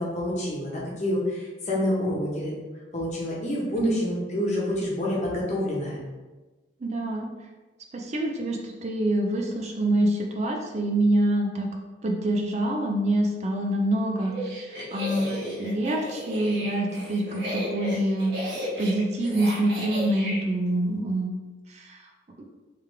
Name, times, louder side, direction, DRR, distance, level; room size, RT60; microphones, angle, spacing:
voice 1, 0.0-2.5 2.9-6.0, left 1 dB, 40° left, -4 dB, 1.1 m, -28 dB
voice 2, 6.8-7.3 7.9-11.7 12.0-21.3 21.7-22.1, right 1 dB, 40° right, 1 dB, 0.5 m, -26 dB
sound 1, 14.2-20.4, equal, 75° right, 1.3 m, -34 dB
3.3 x 3.3 x 3.3 m, 1.2 s
head